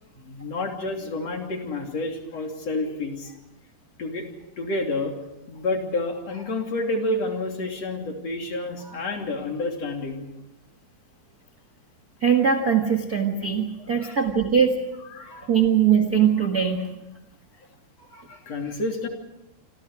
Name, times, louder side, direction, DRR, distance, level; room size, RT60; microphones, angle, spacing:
voice 1, 0.2-3.4 4.0-4.2 4.6-5.1 5.5-10.3 13.8-14.2 15.0-15.5 18.0-19.1, left 2 dB, 40° left, 2 dB, 3.7 m, -29 dB
voice 2, 12.2-14.7 15.5-16.9, right 7 dB, 75° right, 4 dB, 0.8 m, -21 dB
27.5 x 27.0 x 4.9 m, 0.93 s
omnidirectional pair, 4.9 m